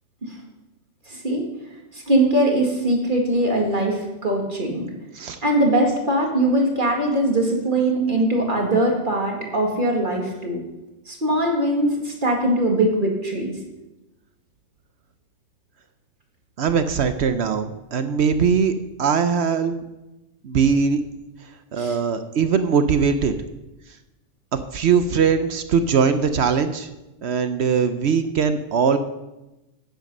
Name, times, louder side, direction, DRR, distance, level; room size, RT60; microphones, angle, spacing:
voice 1, 1.1-1.5 1.9-4.8 5.4-10.6 11.1-13.5 21.8-22.0, right 1 dB, 40° right, 0 dB, 2.1 m, -21 dB
voice 2, 16.6-18.7 19.0-19.8 20.4-21.0 21.7-23.3 24.5-26.9 27.2-29.0, right 6 dB, 60° right, 10 dB, 0.9 m, -21 dB
10.0 x 9.1 x 5.4 m, 1.0 s
omnidirectional pair, 1.3 m